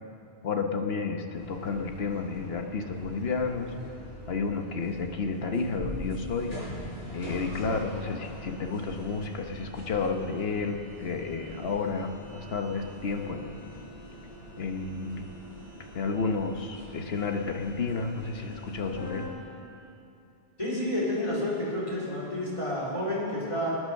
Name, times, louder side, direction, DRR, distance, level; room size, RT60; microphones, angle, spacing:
voice 1, 0.4-3.7 4.3-6.5 7.1-13.5 14.6-15.3 15.9-19.3, left 4 dB, 70° left, 5 dB, 1.4 m, -31 dB
sound 1, 1.3-19.3, equal, 50° left, 5.0 m, -43 dB
voice 2, 20.6-23.7, left 1 dB, 30° left, -6 dB, 4.2 m, -30 dB
20.5 x 9.8 x 6.5 m, 2.8 s
omnidirectional pair, 1.1 m